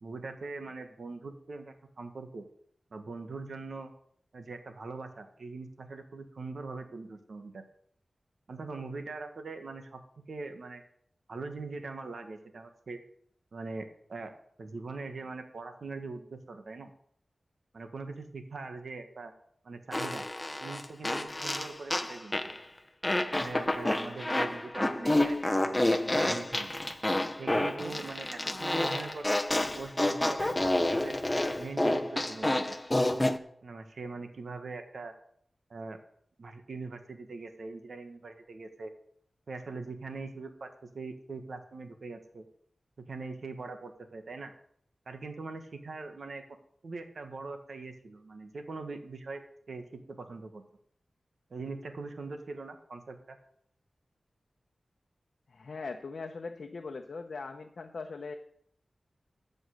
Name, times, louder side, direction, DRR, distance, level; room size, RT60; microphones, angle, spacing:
voice 1, 0.0-2.5 2.9-3.9 4.3-7.6 8.5-10.0 10.3-10.8 11.3-13.0 13.5-14.3 14.6-16.9 17.7-19.3 19.6-20.3 20.6-22.3 23.3-25.4 25.6-25.8 26.1-26.7 27.4-31.2 31.6-32.6 33.6-35.1 35.7-36.0 36.4-38.9 39.5-42.5 43.0-44.5 45.1-46.4 46.8-49.4 49.7-50.6 51.5-53.4, right 3 dB, 75° right, 7 dB, 1.4 m, -42 dB
Fart, 19.9-22.6 23.0-33.4, left 1 dB, 20° left, 0.8 m, -29 dB
voice 2, 55.5-58.3, left 4 dB, 75° left, 3 dB, 0.8 m, -40 dB
14.5 x 5.4 x 6.5 m, 0.67 s
wide cardioid pair, 70°, 0 cm